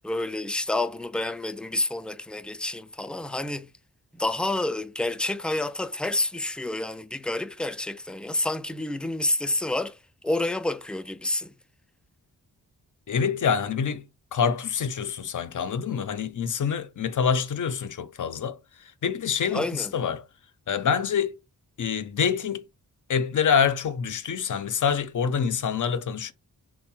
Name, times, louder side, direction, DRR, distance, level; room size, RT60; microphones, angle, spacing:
voice 1, 0.0-3.7 4.1-10.0 10.2-11.5 19.5-19.9, left 2 dB, 5° left, 0.3 m, -29 dB
voice 2, 13.1-14.0 14.3-18.6 19.0-20.2 20.7-21.4 21.8-22.6 23.1-26.3, left 7 dB, 50° left, 0.6 m, -26 dB
3.5 x 2.1 x 4.2 m
cardioid pair, 55°, 38 cm